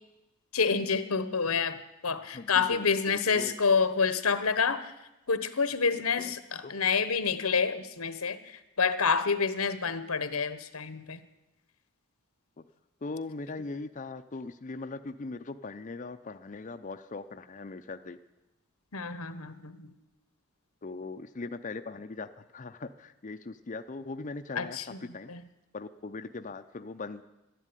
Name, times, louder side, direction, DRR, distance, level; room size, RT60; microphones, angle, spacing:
voice 1, 0.5-4.9 5.3-11.2 18.9-19.9 24.5-25.0 25.3-25.4, left 5 dB, 90° left, 12 dB, 1.2 m, -28 dB
voice 2, 2.3-3.6 6.2-6.3 6.6-6.7 13.0-18.2 20.8-25.3 25.7-27.2, left 3 dB, 35° left, 7 dB, 0.5 m, -40 dB
12.5 x 11.0 x 9.8 m, 0.96 s
head